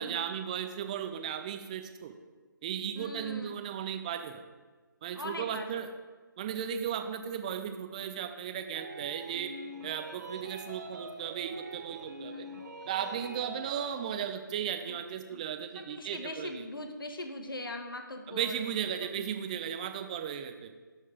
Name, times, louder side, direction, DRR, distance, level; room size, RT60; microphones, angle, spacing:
voice 1, 0.0-2.1 2.6-4.4 5.0-5.9 6.4-9.5 9.8-12.5 12.9-16.7 18.3-20.7, right 8 dB, 20° right, 7 dB, 0.5 m, -36 dB
voice 2, 2.9-3.6 5.1-5.8 12.3-12.4 14.9-15.0 15.3-15.4 15.7-18.6 19.0-19.1, left 1 dB, 80° left, 5 dB, 1.4 m, -41 dB
sound 1, 8.7-14.2, right 2 dB, 55° right, 1.3 m, -44 dB
11.5 x 4.5 x 4.9 m, 1.4 s
figure-of-eight pair, 155°, 11 cm